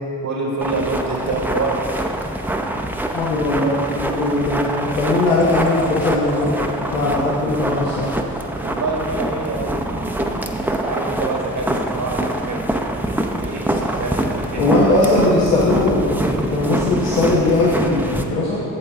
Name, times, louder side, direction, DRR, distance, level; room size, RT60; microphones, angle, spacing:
voice 1, 0.2-1.8 8.6-12.8 13.4-14.7 15.3-15.5, right 3 dB, 55° right, -1 dB, 1.5 m, -26 dB
sound 1, 0.6-18.2, right 1 dB, 5° right, 0.6 m, -25 dB
voice 2, 3.1-8.1 14.5-18.6, left 2 dB, 80° left, -7 dB, 1.2 m, -19 dB
sound 2, 5.2-8.4, left 4 dB, 40° left, 1.1 m, -32 dB
8.5 x 7.3 x 3.6 m, 2.8 s
hypercardioid pair, 50°, 42 cm